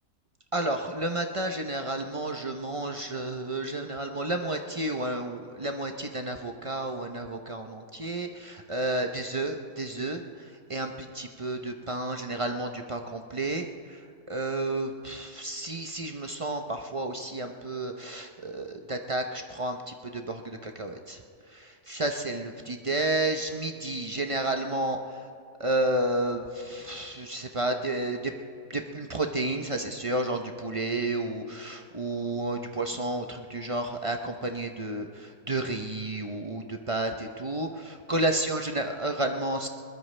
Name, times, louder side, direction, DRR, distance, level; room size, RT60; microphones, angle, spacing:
voice 1, 0.5-10.2 10.7-14.0 14.3-21.2 21.5-25.3 25.6-28.3 28.7-39.7, right 2 dB, 45° right, 5 dB, 0.4 m, -31 dB
21.0 x 20.5 x 3.3 m, 2.3 s
omnidirectional pair, 1.7 m